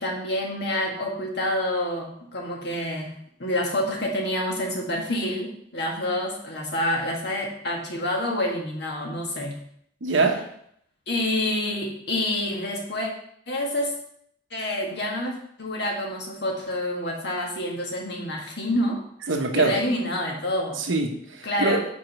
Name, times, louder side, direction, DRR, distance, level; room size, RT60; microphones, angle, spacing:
voice 1, 0.0-3.1 3.4-9.5 11.1-13.1 13.5-13.9 14.5-19.0 19.5-20.8 21.4-21.8, left 1 dB, 60° left, 0 dB, 1.7 m, -27 dB
voice 2, 10.0-10.5 19.3-19.8 20.8-21.9, right 3 dB, 85° right, 4 dB, 1.0 m, -23 dB
5.1 x 5.0 x 6.0 m, 0.69 s
head